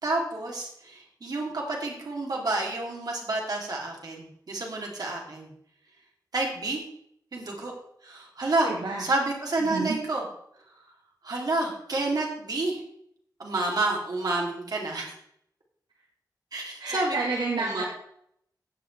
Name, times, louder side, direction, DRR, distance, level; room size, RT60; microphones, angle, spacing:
voice 1, 0.0-5.5 6.3-6.8 7.3-7.7 8.0-8.7 9.0-10.2 11.2-12.8 13.4-15.0 16.5-17.2 17.6-17.8, right 2 dB, 60° right, -1 dB, 3.1 m, -29 dB
voice 2, 8.6-9.0 9.6-10.0 16.8-17.8, right 3 dB, 85° right, -1 dB, 1.8 m, -30 dB
16.0 x 7.8 x 3.4 m, 0.70 s
wide cardioid pair, 130°, 8 cm